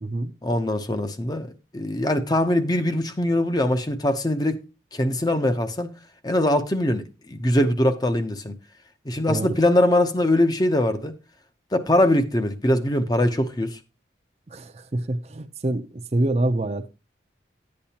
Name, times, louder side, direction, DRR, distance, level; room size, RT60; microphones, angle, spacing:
voice 1, 0.4-4.6 4.9-5.9 6.2-8.5 9.1-11.1 11.7-13.8, left 1 dB, 20° left, 0.7 m, -22 dB
voice 2, 14.9-15.8 16.1-16.9, right 1 dB, 35° right, 0.5 m, -25 dB
11.0 x 8.6 x 2.8 m
head